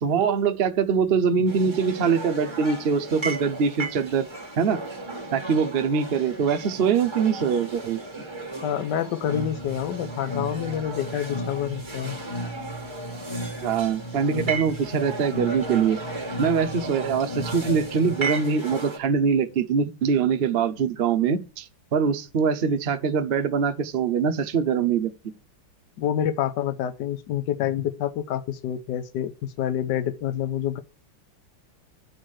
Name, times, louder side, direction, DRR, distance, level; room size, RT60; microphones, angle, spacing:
voice 1, 0.0-4.3 4.6-4.8 5.3-8.0 13.6-16.0 16.4-25.1, right 6 dB, 70° right, 0.5 m, -23 dB
sound 1, 1.5-19.0, right 2 dB, 15° right, 1.2 m, -35 dB
voice 2, 8.6-12.2 26.0-30.8, left 10 dB, 65° left, 1.4 m, -27 dB
sound 2, 9.2-18.2, equal, 50° left, 0.5 m, -36 dB
10.5 x 4.5 x 6.2 m
omnidirectional pair, 2.1 m